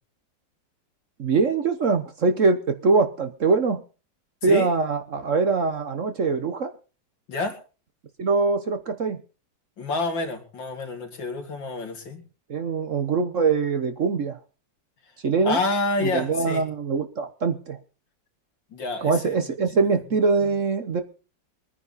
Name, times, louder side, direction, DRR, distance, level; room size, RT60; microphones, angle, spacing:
voice 1, 1.2-3.8 4.4-6.7 8.2-9.2 12.5-14.4 15.2-15.6 16.0-17.8 19.0-21.0, right 4 dB, 50° right, 8 dB, 1.2 m, -23 dB
voice 2, 9.8-12.2 15.4-16.6 18.7-19.5, left 3 dB, 80° left, 4 dB, 3.3 m, -28 dB
23.0 x 9.9 x 4.0 m, 0.35 s
omnidirectional pair, 2.0 m